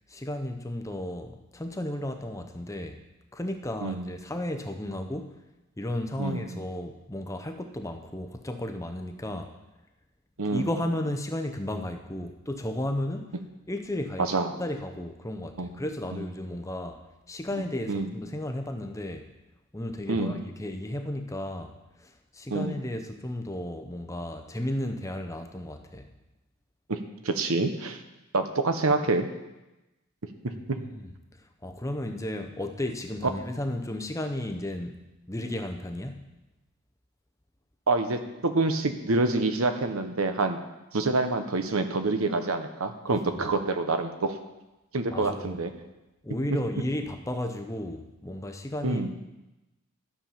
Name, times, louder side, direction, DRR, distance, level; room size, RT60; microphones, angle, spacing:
voice 1, 0.1-3.0 3.3-5.4 5.8-9.5 10.5-13.3 13.7-14.3 14.6-17.0 17.3-19.3 19.7-21.8 22.0-26.1 30.5-31.1 31.6-35.0 35.3-36.3 43.1-43.2 45.1-45.6 46.2-49.1, left 1 dB, 15° left, 6 dB, 0.7 m, -34 dB
voice 2, 6.2-6.5 10.4-10.7 14.2-14.6 15.6-15.7 16.1-16.2 17.5-18.1 20.1-20.4 22.5-22.8 26.9-27.0 27.2-28.0 28.3-29.3 30.7-30.8 37.9-40.6 40.9-44.4 44.9-45.7 48.8-49.1, right 3 dB, 75° right, 7 dB, 1.0 m, -27 dB
12.5 x 7.2 x 5.7 m, 1.0 s
head